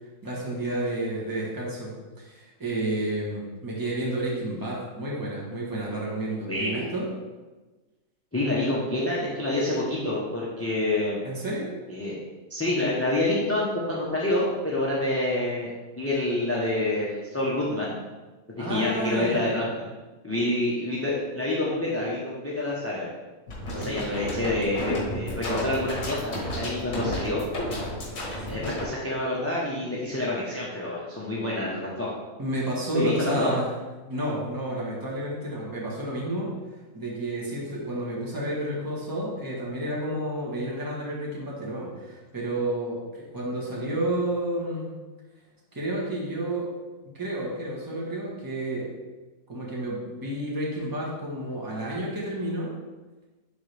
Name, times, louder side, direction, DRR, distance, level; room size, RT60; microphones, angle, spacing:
voice 1, 0.2-7.1 11.2-11.7 18.6-19.6 23.7-24.1 28.5-28.9 32.4-33.7 34.1-36.5 36.9-44.9 45.7-46.7 47.0-48.9 49.5-52.7, right 1 dB, 15° right, -4 dB, 1.3 m, -30 dB
voice 2, 6.4-6.8 8.3-11.3 11.9-12.1 12.5-15.7 16.0-18.0 18.5-19.7 20.2-23.1 23.7-27.5 28.5-32.1 32.9-33.5, left 1 dB, 10° left, -5 dB, 0.8 m, -27 dB
sound 1, 23.5-28.8, equal, 70° left, 2.1 m, -32 dB
10.0 x 3.8 x 3.4 m, 1.2 s
omnidirectional pair, 1.5 m